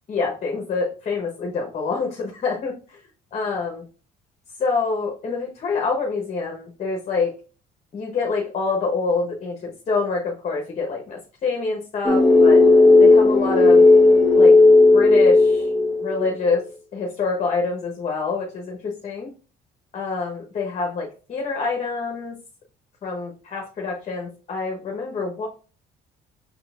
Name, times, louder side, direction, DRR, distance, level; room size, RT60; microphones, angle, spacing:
voice 1, 0.1-3.0 3.3-3.8 4.6-7.3 7.9-12.6 13.0-13.8 14.3-14.6 14.9-15.7 16.0-16.6 16.9-19.3 19.9-22.4 23.0-25.5, left 4 dB, 40° left, 0 dB, 0.9 m, -26 dB
sound 1, 12.0-16.2, left 3 dB, ahead, 0.8 m, -13 dB
5.6 x 3.8 x 2.3 m, 0.37 s
cardioid pair, 110°, 17 cm